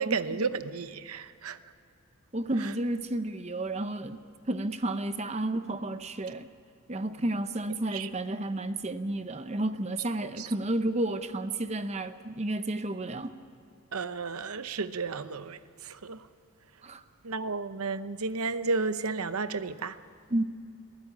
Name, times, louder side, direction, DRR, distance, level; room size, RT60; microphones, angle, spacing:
voice 1, 0.0-1.6 2.6-2.7 7.2-7.3 7.9-8.1 10.2-10.5 13.9-16.3 17.2-20.0, right 4 dB, 80° right, 0.9 m, -33 dB
voice 2, 2.3-4.2 4.5-6.5 6.9-13.3 16.8-17.0 20.3-20.4, right 1 dB, 30° right, 0.7 m, -31 dB
21.5 x 15.5 x 8.5 m
head